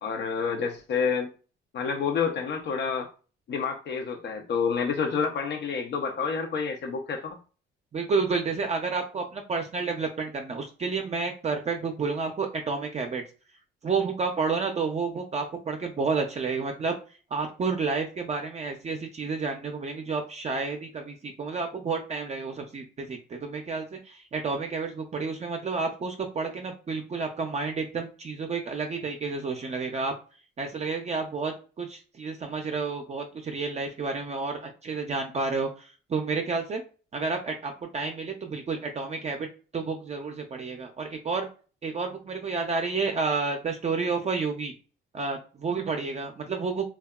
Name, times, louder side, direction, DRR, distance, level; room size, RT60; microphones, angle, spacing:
voice 1, 0.0-1.3 1.7-3.1 3.5-7.4, left 5 dB, 60° left, 0.5 m, -28 dB
voice 2, 7.9-13.2 13.8-17.0 17.3-30.1 30.6-36.8 37.1-39.5 39.7-41.5 41.8-44.7 45.1-46.9, right 4 dB, 35° right, 0.4 m, -30 dB
2.7 x 2.3 x 2.3 m
cardioid pair, 90°, 20 cm